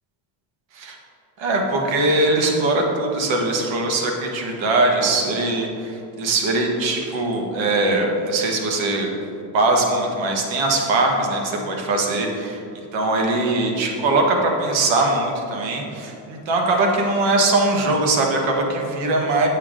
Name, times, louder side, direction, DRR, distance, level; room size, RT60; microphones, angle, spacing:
voice 1, 1.4-9.1 9.5-12.6 12.9-19.5, right 2 dB, 65° right, 1 dB, 1.6 m, -21 dB
8.7 x 7.3 x 3.7 m, 2.6 s
cardioid pair, 115°, 48 cm